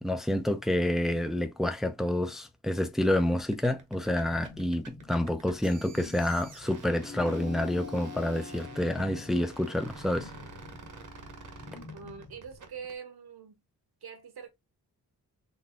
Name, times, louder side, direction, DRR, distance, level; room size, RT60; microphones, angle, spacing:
voice 1, 0.0-10.3, left 1 dB, ahead, 0.5 m, -28 dB
sound 1, 3.3-13.0, right 5 dB, 50° right, 1.0 m, -49 dB
sound 2, 4.0-12.6, left 3 dB, 90° left, 1.5 m, -50 dB
sound 3, 7.0-11.8, left 5 dB, 25° left, 0.8 m, -45 dB
voice 2, 11.9-13.6 14.0-14.5, right 6 dB, 70° right, 1.1 m, -44 dB
4.1 x 2.7 x 2.5 m
wide cardioid pair, 85°, 39 cm